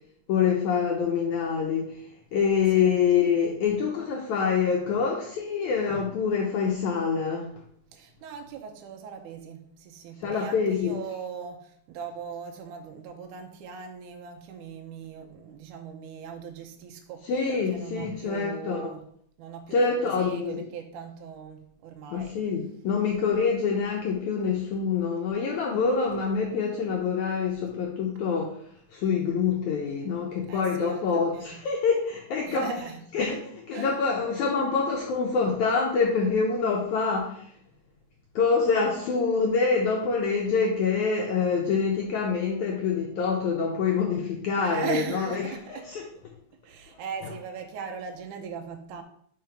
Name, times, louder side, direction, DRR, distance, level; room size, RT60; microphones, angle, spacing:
voice 1, 0.3-2.0 2.3-7.5 10.2-11.0 17.2-18.8 19.7-20.6 22.1-28.6 28.9-32.7 33.1-37.5 38.3-46.1 47.2-47.3, left 5 dB, 80° left, 0 dB, 1.7 m, -26 dB
voice 2, 7.9-17.3 17.7-19.0 19.4-19.8 20.0-22.4 25.9-26.1 30.5-31.6 32.5-33.1 33.7-34.0 44.6-45.9 46.7-49.0, right 6 dB, 75° right, 3 dB, 1.9 m, -39 dB
5.6 x 4.6 x 5.0 m, 0.64 s
omnidirectional pair, 4.3 m